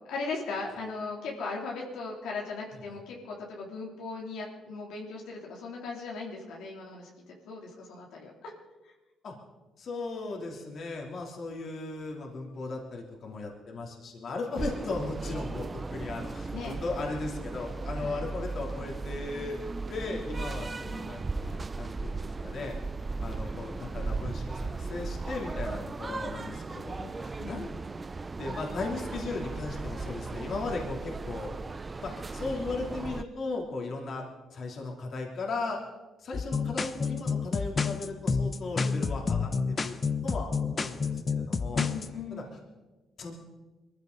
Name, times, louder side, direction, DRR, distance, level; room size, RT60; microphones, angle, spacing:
voice 1, 0.1-7.1 7.4-8.5 16.5-16.8 18.0-18.2 27.4-27.6 41.7-42.5, left 4 dB, 85° left, -2 dB, 3.3 m, -38 dB
voice 2, 9.8-19.6 19.9-22.7 23.2-27.7 28.4-31.5 32.0-34.2 34.5-35.8 36.2-40.0 40.2-41.9 42.3-42.4 43.2-43.3, left 3 dB, 55° left, 0 dB, 3.2 m, -37 dB
sound 1, 14.6-33.2, right 3 dB, 25° right, 0.6 m, -36 dB
sound 2, 36.3-42.1, left 5 dB, 35° left, 1.0 m, -29 dB
22.5 x 15.0 x 4.0 m, 1.2 s
cardioid pair, 90°, 0 cm